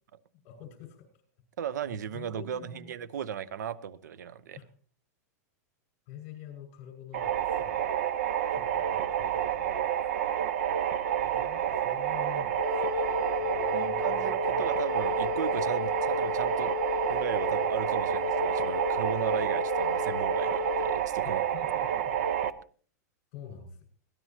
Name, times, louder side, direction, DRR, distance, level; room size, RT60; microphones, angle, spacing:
voice 1, 0.4-1.1 1.9-3.0 4.6-4.7 6.1-7.8 8.5-10.2 11.1-14.7 21.2-22.2 23.3-23.9, left 8 dB, 35° left, 6.0 m, -48 dB
voice 2, 1.6-4.6 13.7-16.7 17.1-21.4, right 9 dB, 85° right, 0.9 m, -36 dB
sound 1, 7.1-22.5, right 10 dB, 55° right, 0.9 m, -29 dB
Wind instrument woodwind instrument, 12.6-21.0, left 8 dB, 80° left, 0.9 m, -34 dB
22.0 x 17.0 x 2.9 m
supercardioid pair, 160°, 9 cm